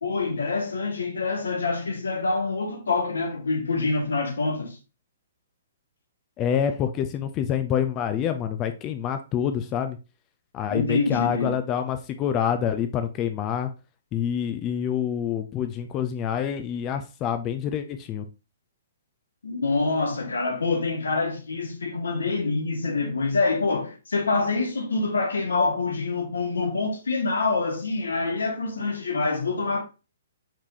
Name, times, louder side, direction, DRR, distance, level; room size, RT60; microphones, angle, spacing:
voice 1, 0.0-4.8 10.7-11.6 19.4-29.8, left 3 dB, 80° left, 1.1 m, -26 dB
voice 2, 6.4-10.0 10.5-13.7 14.1-18.3, left 8 dB, 25° left, 0.4 m, -27 dB
4.7 x 3.6 x 2.8 m
hypercardioid pair, 130°, 0 cm